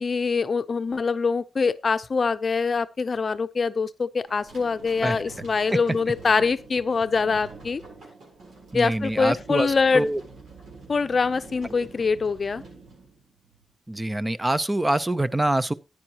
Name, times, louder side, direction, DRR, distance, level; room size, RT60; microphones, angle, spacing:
voice 1, 0.0-7.8 8.7-10.1 10.9-12.6, left 4 dB, 50° left, 0.6 m, -24 dB
sound 1, 4.3-13.7, right 4 dB, 85° right, 7.5 m, -46 dB
voice 2, 8.7-10.2 13.9-15.7, right 1 dB, 15° right, 0.6 m, -25 dB
13.5 x 9.8 x 2.9 m
cardioid pair, 85°, 0 cm